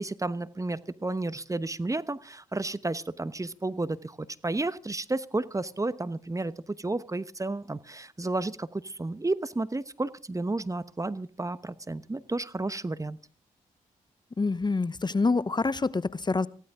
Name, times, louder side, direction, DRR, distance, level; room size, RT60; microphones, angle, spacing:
voice 1, 0.0-4.2 4.4-13.2, right 2 dB, 20° right, 15 dB, 1.0 m, -32 dB
voice 2, 14.4-16.5, left 3 dB, 30° left, 18 dB, 0.9 m, -26 dB
19.5 x 15.5 x 3.7 m, 0.37 s
supercardioid pair, 45°, 15 cm